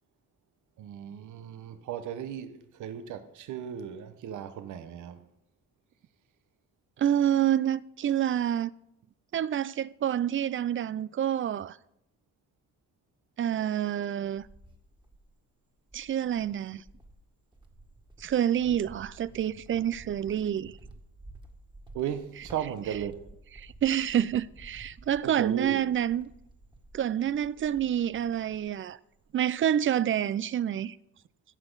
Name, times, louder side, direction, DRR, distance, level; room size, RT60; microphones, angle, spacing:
voice 1, 0.8-5.2 21.9-23.2 25.2-25.8, right 9 dB, 75° right, 1.0 m, -36 dB
voice 2, 7.0-8.7 9.3-11.8 13.4-14.4 15.9-16.8 18.2-20.7 23.6-26.3 26.9-29.0 29.3-31.0, right 10 dB, 45° right, 0.4 m, -28 dB
Cricket, 14.0-15.4 15.9-28.8 29.1-29.7, right 2 dB, 15° right, 1.8 m, -52 dB
15.0 x 6.1 x 3.9 m
cardioid pair, 90°, 30 cm